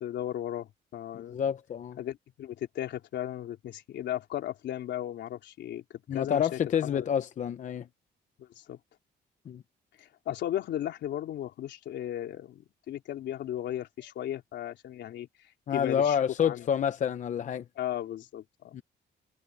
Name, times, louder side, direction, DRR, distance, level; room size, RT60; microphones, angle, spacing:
voice 1, 0.0-1.4 2.0-5.8 6.1-7.1 8.4-8.8 10.0-16.2 16.4-16.7 17.8-18.8, left 11 dB, 80° left, 3.6 m, -36 dB
voice 2, 1.3-2.0 6.1-7.9 9.5-9.6 15.7-17.6 18.7-18.8, left 8 dB, 45° left, 0.7 m, -28 dB
cardioid pair, 150°, 18 cm